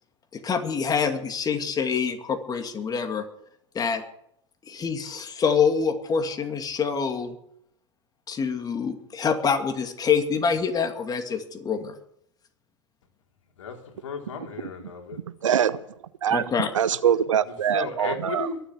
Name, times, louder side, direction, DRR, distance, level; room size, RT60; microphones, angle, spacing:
voice 1, 0.3-3.2 3.7-4.0 4.7-7.4 8.3-11.9 16.3-16.7, left 6 dB, 25° left, 6 dB, 2.4 m, -26 dB
voice 2, 13.6-15.2 17.4-18.6, left 4 dB, 75° left, 3 dB, 3.0 m, -35 dB
voice 3, 15.4-15.8 16.2-16.4 16.7-18.5, right 9 dB, 80° right, 16 dB, 0.9 m, -23 dB
23.0 x 8.2 x 7.2 m, 0.74 s
hypercardioid pair, 95°, 16 cm